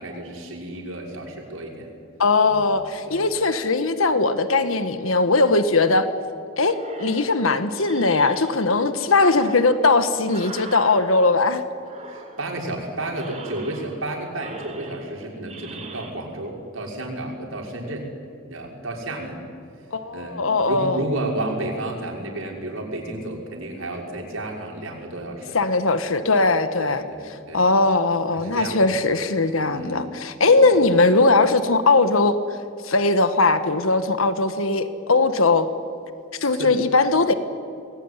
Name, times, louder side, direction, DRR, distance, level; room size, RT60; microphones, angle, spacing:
voice 1, 0.0-1.9 2.5-2.6 3.0-3.2 12.1-18.1 18.5-19.4 20.1-20.4 20.7-25.6 26.8-27.6 28.3-28.9 29.6-30.1 30.5-30.7 36.4-36.7, right 1 dB, 75° right, 0 dB, 5.9 m, -31 dB
voice 2, 2.2-6.1 6.6-11.6 19.9-21.0 25.5-27.0 27.5-32.4 32.8-35.7 36.4-37.3, left 3 dB, 80° left, 10 dB, 1.5 m, -19 dB
sound 1, 6.6-8.7 9.1-11.5 11.8-12.7 13.1-14.1 14.3-16.1, right 3 dB, 35° right, 4.3 m, -41 dB
27.0 x 20.5 x 9.9 m, 2.5 s
head